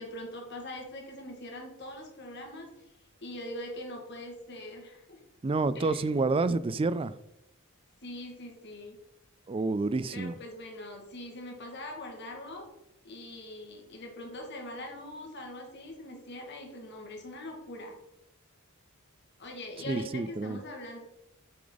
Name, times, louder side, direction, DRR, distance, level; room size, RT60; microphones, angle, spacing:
voice 1, 0.0-2.9 3.2-5.2 5.7-6.1 8.0-9.0 10.1-12.7 13.0-18.0 19.4-21.0, left 1 dB, 55° left, 2.1 m, -42 dB
voice 2, 5.4-7.2 9.5-10.4 19.8-20.6, right 3 dB, 25° right, 0.3 m, -29 dB
8.4 x 6.9 x 4.0 m
head